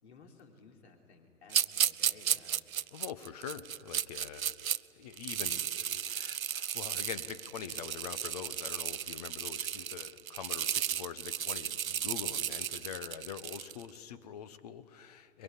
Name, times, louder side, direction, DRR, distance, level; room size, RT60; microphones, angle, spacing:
voice 1, 0.0-2.7, left 4 dB, 45° left, 2 dB, 3.8 m, -57 dB
sound 1, 1.5-4.8 5.1-13.8, right 9 dB, 65° right, 0.6 m, -34 dB
voice 2, 2.9-4.7 4.9-15.4, left 8 dB, 25° left, 15 dB, 0.9 m, -44 dB
23.0 x 22.5 x 9.8 m, 2.6 s
figure-of-eight pair, 125°, 45 cm